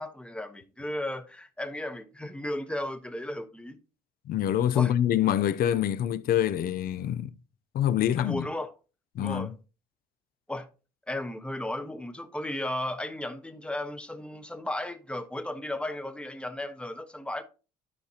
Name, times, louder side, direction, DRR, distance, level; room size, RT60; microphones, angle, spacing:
voice 1, 0.0-3.8 4.7-4.9 8.2-8.7 9.2-9.5 10.5-10.7 11.1-17.4, left 1 dB, 5° left, 1.0 m, -35 dB
voice 2, 4.3-7.3 7.7-8.5 9.1-9.5, left 10 dB, 60° left, 0.6 m, -25 dB
12.5 x 5.0 x 2.9 m
cardioid pair, 110°, 17 cm